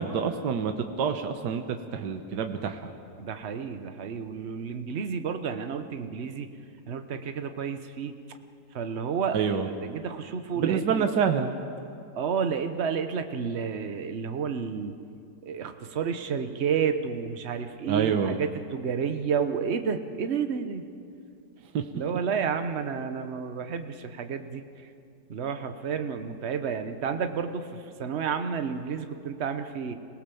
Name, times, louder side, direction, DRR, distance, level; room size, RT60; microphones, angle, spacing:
voice 1, 0.0-2.9 9.3-9.7 10.6-11.6 17.9-18.4 21.7-21.9, right 7 dB, 75° right, 6 dB, 1.6 m, -27 dB
voice 2, 3.2-6.5 6.9-8.1 8.7-11.1 12.2-15.0 15.4-20.9 21.9-24.9 25.3-29.9, right 6 dB, 45° right, 8 dB, 1.2 m, -31 dB
26.5 x 18.0 x 7.0 m, 2.4 s
omnidirectional pair, 1.9 m